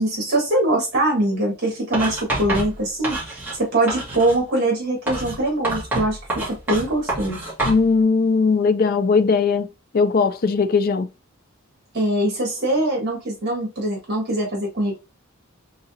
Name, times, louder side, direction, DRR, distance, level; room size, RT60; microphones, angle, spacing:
voice 1, 0.0-7.4 11.9-15.0, right 1 dB, 50° right, 1.7 m, -23 dB
Writing, 1.9-3.6 3.9-4.4 5.1-7.8, right 2 dB, 10° right, 1.8 m, -27 dB
voice 2, 7.7-9.7 9.9-11.1, left 4 dB, 45° left, 0.4 m, -19 dB
4.0 x 3.7 x 2.7 m
head